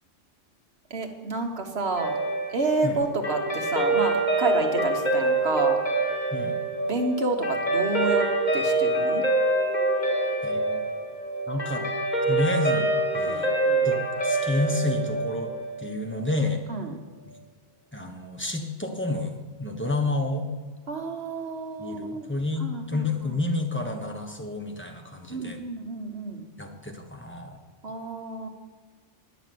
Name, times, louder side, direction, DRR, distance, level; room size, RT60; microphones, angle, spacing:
voice 1, 0.9-2.2 2.5-5.8 6.8-8.3 8.5-9.2 13.3-13.9 16.7-17.0 20.9-22.3 22.6-23.3 25.3-26.4 27.8-28.5, right 3 dB, 55° right, 3 dB, 1.5 m, -30 dB
Guitar, 2.0-16.5, right 2 dB, 35° left, 2.5 m, -26 dB
voice 2, 10.4-10.8 11.5-11.9 12.3-12.9 13.1-13.5 13.8-15.5 15.8-16.6 17.9-20.5 21.8-25.6 26.6-27.6, left 2 dB, 10° left, 3 dB, 1.2 m, -29 dB
11.5 x 6.1 x 9.3 m, 1.5 s
omnidirectional pair, 1.2 m